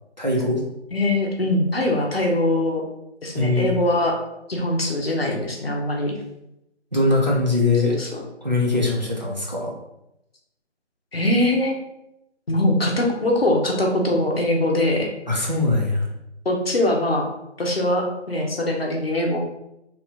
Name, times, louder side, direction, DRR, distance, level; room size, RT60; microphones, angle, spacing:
voice 1, 0.2-0.6 3.3-3.7 6.9-8.0 8.4-9.7 15.3-16.1, left 2 dB, 40° right, -3 dB, 0.6 m, -21 dB
voice 2, 0.9-2.8 3.2-4.1 4.5-6.1 8.0-8.3 11.1-11.8 12.5-15.1 16.4-17.3 17.6-19.4, left 1 dB, 55° left, 0 dB, 0.7 m, -22 dB
3.0 x 2.6 x 3.4 m, 0.85 s
figure-of-eight pair, 165°, 36 cm